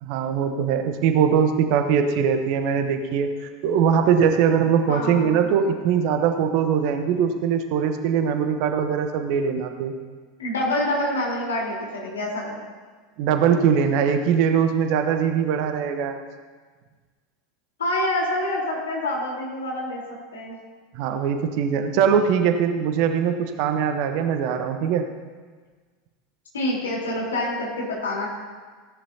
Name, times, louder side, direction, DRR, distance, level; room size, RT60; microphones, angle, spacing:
voice 1, 0.0-9.9 13.2-16.2 20.9-25.0, right 7 dB, 50° right, 7 dB, 1.1 m, -21 dB
voice 2, 4.9-5.4 10.4-12.6 17.8-20.0 20.3-20.6 26.5-28.3, left 1 dB, 70° left, -3 dB, 3.9 m, -26 dB
17.0 x 10.5 x 2.8 m, 1.5 s
figure-of-eight pair, 80°, 0 cm